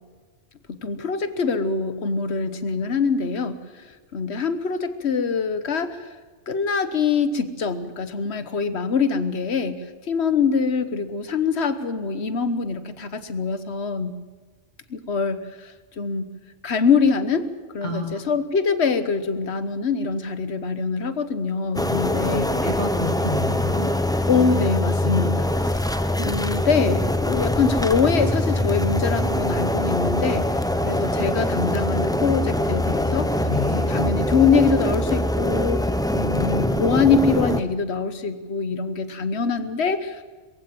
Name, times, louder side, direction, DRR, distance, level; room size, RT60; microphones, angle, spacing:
voice 1, 0.7-3.6 4.1-6.1 6.5-14.1 14.9-16.3 16.6-17.5 17.7-22.5 24.3-25.8 26.2-30.5 30.8-40.3, left 5 dB, 60° left, 11 dB, 1.4 m, -24 dB
voice 2, 17.8-18.2 22.6-23.9 25.0-25.2 33.5-33.9, left 3 dB, 40° left, 3 dB, 1.7 m, -29 dB
sound 1, 21.7-37.6, left 1 dB, 5° left, 0.5 m, -23 dB
22.0 x 15.5 x 7.8 m, 1.4 s
omnidirectional pair, 1.3 m